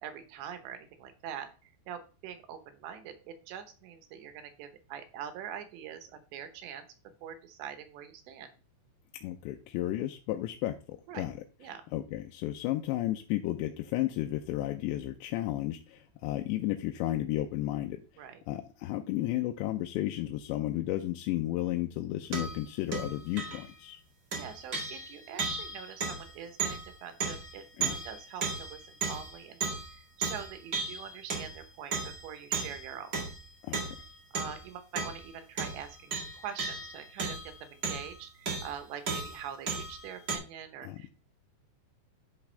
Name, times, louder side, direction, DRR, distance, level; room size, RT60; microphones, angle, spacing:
voice 1, 0.0-8.5 11.1-11.3 11.6-11.8 18.2-18.4 24.3-33.1 34.3-41.1, right 8 dB, 80° right, 8 dB, 3.3 m, -44 dB
voice 2, 9.2-11.4 11.9-24.0 27.8-27.9 33.6-34.0 40.8-41.0, left 14 dB, 85° left, 5 dB, 2.8 m, -33 dB
sound 1, 22.3-22.7 22.9-23.8 24.3-30.0 30.2-31.7 31.9-34.7 35.0-35.3 35.6-38.2 38.5-38.8 39.1-40.4, right 4 dB, 50° right, 1.1 m, -35 dB
11.0 x 6.0 x 3.3 m, 0.34 s
omnidirectional pair, 5.1 m